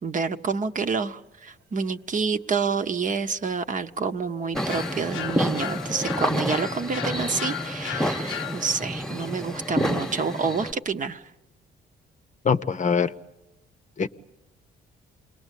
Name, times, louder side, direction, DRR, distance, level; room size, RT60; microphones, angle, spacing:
voice 1, 0.0-11.3, right 5 dB, 40° right, 8 dB, 0.9 m, -28 dB
sound 1, 2.5-2.6 2.8-6.5, right 2 dB, 75° right, 1.1 m, -44 dB
sound 2, 4.5-10.7, equal, 5° left, 1.2 m, -29 dB
sound 3, 4.7-9.0, left 11 dB, 80° left, 0.8 m, -36 dB
voice 2, 12.4-13.1 14.0-14.1, left 6 dB, 40° left, 11 dB, 0.8 m, -22 dB
28.0 x 20.5 x 8.3 m, 1.0 s
cardioid pair, 90°, 20 cm